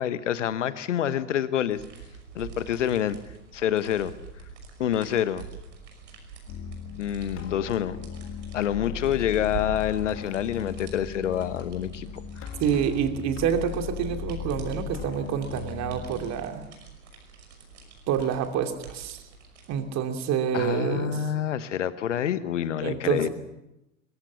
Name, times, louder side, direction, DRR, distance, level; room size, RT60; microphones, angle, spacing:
voice 1, 0.0-1.8 2.3-3.2 3.5-4.1 4.8-5.5 7.0-8.0 8.5-12.5 20.5-23.3, left 10 dB, 75° left, 15 dB, 1.3 m, -27 dB
sound 1, 1.7-19.8, right 6 dB, 70° right, 5.8 m, -46 dB
sound 2, 6.5-16.3, left 9 dB, 35° left, 2.4 m, -38 dB
voice 2, 12.6-16.7 18.1-19.2 19.7-21.3 22.8-23.3, right 8 dB, 45° right, 6 dB, 2.8 m, -27 dB
22.5 x 22.5 x 7.0 m, 0.91 s
figure-of-eight pair, 70°, 37 cm